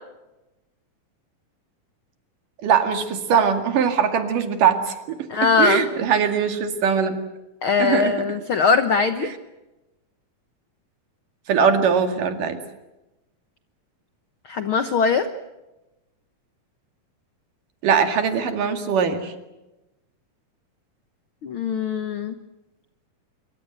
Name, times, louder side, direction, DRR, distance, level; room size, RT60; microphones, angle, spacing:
voice 1, 2.6-5.3 5.6-7.1 7.8-8.1 9.2-9.3 11.5-12.6 17.8-19.3, right 7 dB, 65° right, 7 dB, 3.7 m, -21 dB
voice 2, 5.3-5.8 7.6-9.3 14.5-15.3 21.4-22.3, left 5 dB, 80° left, 10 dB, 1.1 m, -21 dB
26.0 x 23.5 x 7.9 m, 1.0 s
omnidirectional pair, 4.1 m